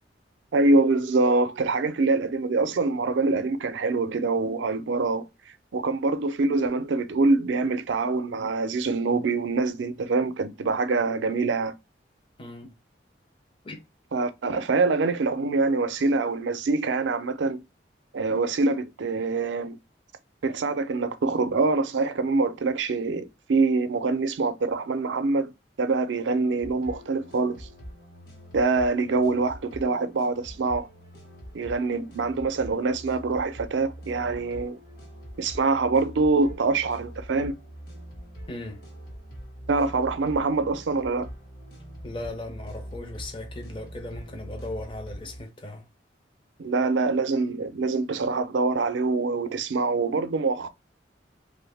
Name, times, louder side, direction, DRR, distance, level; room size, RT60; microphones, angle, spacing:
voice 1, 0.5-5.3 5.7-11.7 14.1-17.6 18.1-19.8 20.4-25.5 25.8-27.7 28.5-30.9 31.5-34.8 35.4-37.5 39.7-41.3 46.6-50.7, right 3 dB, 85° right, 0.5 m, -25 dB
voice 2, 12.4-12.7 13.6-13.8 38.5-38.8 42.0-45.8, left 2 dB, 30° left, 0.5 m, -37 dB
sound 1, 26.5-45.4, equal, 55° left, 1.2 m, -43 dB
2.7 x 2.5 x 3.3 m
head